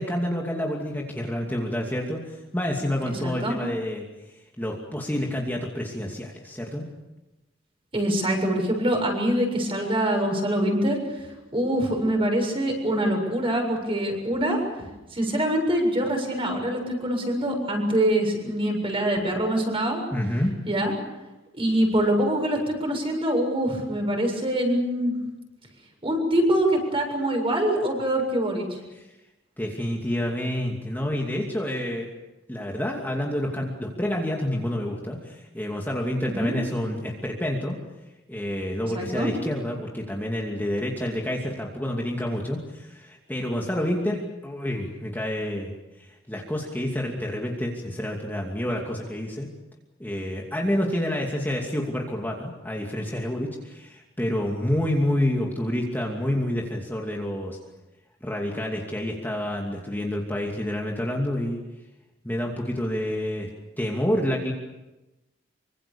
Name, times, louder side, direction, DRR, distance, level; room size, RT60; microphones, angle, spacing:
voice 1, 0.0-6.9 20.1-20.6 28.9-29.1 29.6-32.1 32.5-37.8 38.3-49.5 50.0-57.6 58.2-61.6 62.2-63.5 63.8-64.5, left 1 dB, 10° left, -1 dB, 2.6 m, -28 dB
voice 2, 3.2-3.6 7.9-11.0 11.5-14.6 15.1-20.0 20.7-20.9 21.5-25.1 26.0-28.7 36.2-36.5 38.9-39.3, right 1 dB, 30° right, 2 dB, 7.3 m, -24 dB
26.0 x 25.0 x 7.1 m, 1.0 s
head